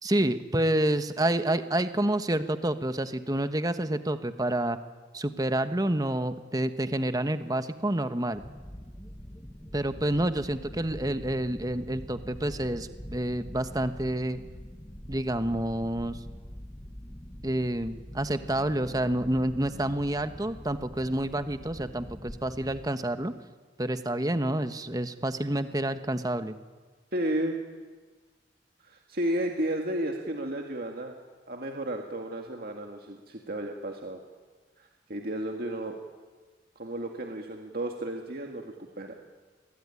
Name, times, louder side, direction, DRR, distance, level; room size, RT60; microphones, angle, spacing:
voice 1, 0.0-4.8 5.1-8.4 9.7-14.4 15.1-16.2 17.4-23.3 23.8-26.6, right 1 dB, 20° right, 10 dB, 1.2 m, -28 dB
sound 1, 8.3-22.9, equal, 15° left, 1.6 m, -44 dB
voice 2, 27.1-27.6 28.8-31.2 31.5-34.2 34.8-36.0 36.8-39.1, right 1 dB, 55° right, 2 dB, 2.0 m, -33 dB
27.0 x 21.5 x 9.9 m, 1.4 s
head